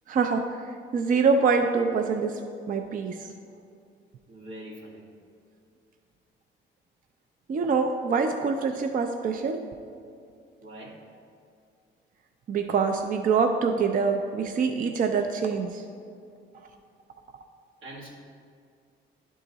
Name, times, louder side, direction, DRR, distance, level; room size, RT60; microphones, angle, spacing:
voice 1, 0.1-2.4 2.7-3.3 7.5-9.6 12.5-15.8, right 5 dB, 45° right, 5 dB, 0.4 m, -25 dB
voice 2, 4.3-5.1 10.6-11.0 17.8-18.1, right 1 dB, 85° right, -5 dB, 1.8 m, -43 dB
11.0 x 3.7 x 4.0 m, 2.3 s
cardioid pair, 90°, 20 cm